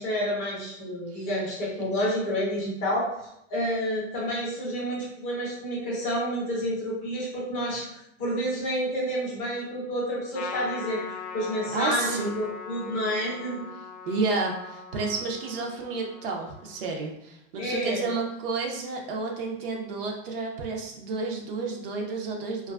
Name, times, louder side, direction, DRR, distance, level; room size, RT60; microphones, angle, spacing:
voice 1, 0.0-3.1 3.5-7.8 8.2-13.6 17.6-18.0, equal, 20° left, -5 dB, 0.5 m, -29 dB
Trumpet, 10.3-17.0, left 4 dB, 75° left, 0.5 m, -40 dB
voice 2, 11.7-12.4 14.1-22.7, right 3 dB, 50° right, 1 dB, 0.4 m, -31 dB
2.4 x 2.3 x 2.3 m, 0.82 s
supercardioid pair, 150°, 36 cm